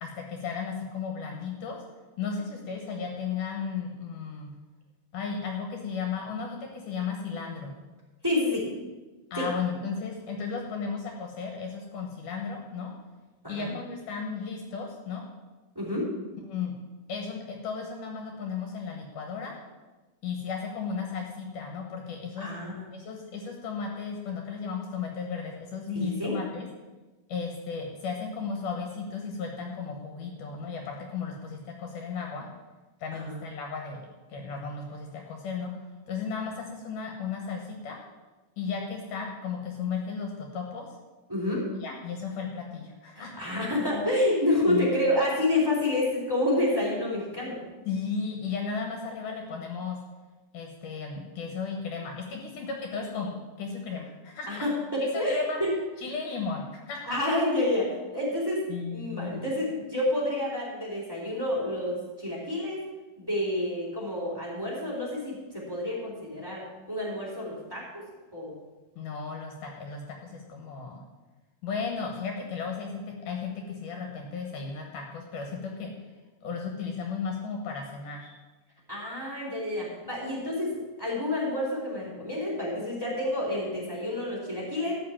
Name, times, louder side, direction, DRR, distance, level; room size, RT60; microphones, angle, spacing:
voice 1, 0.0-1.8 2.2-4.5 5.1-7.7 9.3-12.9 13.5-15.2 16.5-16.7 17.1-19.6 20.2-22.5 22.9-26.7 27.3-32.5 33.0-35.7 36.1-38.0 38.6-40.9 41.8-43.5 44.0-44.1 44.7-44.9 47.9-50.0 50.5-54.7 55.0-55.6 56.0-57.2 58.7-59.5 69.0-71.0 71.6-75.9 76.4-78.3, left 5 dB, 70° left, 2 dB, 2.7 m, -35 dB
voice 2, 8.2-8.7 9.4-9.5 13.4-13.7 15.7-16.1 22.4-22.8 25.9-26.3 33.1-33.4 41.3-41.7 43.1-47.6 54.5-55.7 57.0-58.6 58.9-62.8 63.2-68.1 68.3-68.6 78.9-84.9, left 1 dB, 5° right, -5 dB, 3.6 m, -29 dB
13.5 x 5.5 x 8.6 m, 1.2 s
omnidirectional pair, 4.0 m